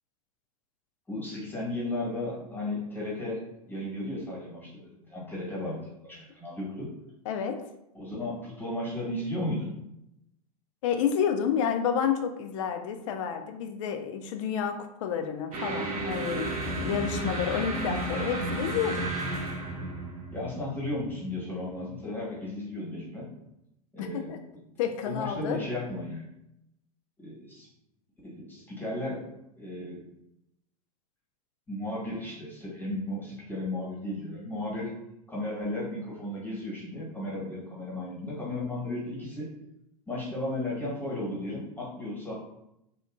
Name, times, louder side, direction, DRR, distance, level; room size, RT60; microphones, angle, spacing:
voice 1, 1.1-6.9 7.9-9.8 20.3-23.3 23.9-24.6 25.0-26.3 27.2-27.7 28.2-29.3 29.6-30.1 31.7-34.9 35.3-39.5 40.1-42.3, left 1 dB, 10° left, -6 dB, 1.2 m, -35 dB
voice 2, 7.3-7.6 10.8-19.0 24.0-24.4 24.8-25.6, left 7 dB, 55° left, 6 dB, 0.4 m, -30 dB
sound 1, 15.5-22.0, right 2 dB, 70° right, 0.7 m, -33 dB
2.8 x 2.3 x 2.4 m, 0.83 s
hypercardioid pair, 95°, 19 cm